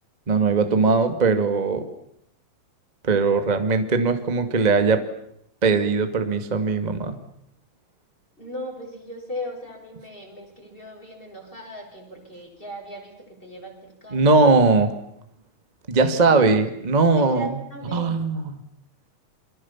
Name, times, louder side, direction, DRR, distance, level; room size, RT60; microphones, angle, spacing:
voice 1, 0.3-1.9 3.0-5.0 5.6-7.2 14.1-14.9 15.9-17.5 17.9-18.6, right 4 dB, 75° right, 8 dB, 0.4 m, -20 dB
voice 2, 8.4-14.3 16.0-16.4 17.2-18.1, equal, 10° left, 1 dB, 6.6 m, -37 dB
29.5 x 23.5 x 7.3 m, 0.75 s
omnidirectional pair, 4.8 m